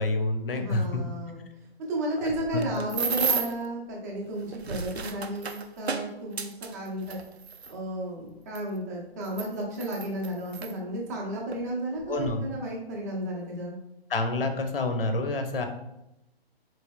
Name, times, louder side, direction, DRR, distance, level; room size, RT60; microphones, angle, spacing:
voice 1, 0.0-1.0 2.2-2.7 12.1-12.4 14.1-15.7, left 2 dB, 60° left, 6 dB, 0.6 m, -28 dB
voice 2, 0.5-1.4 1.9-7.2 7.7-13.8, right 1 dB, 15° right, -3 dB, 0.5 m, -33 dB
sound 1, 2.3-3.7 4.4-7.7 8.6-8.7 9.2-10.7 11.5-11.6 12.0-12.3, right 5 dB, 85° right, 0.5 m, -32 dB
4.2 x 3.2 x 2.2 m, 0.87 s
figure-of-eight pair, 135°, 31 cm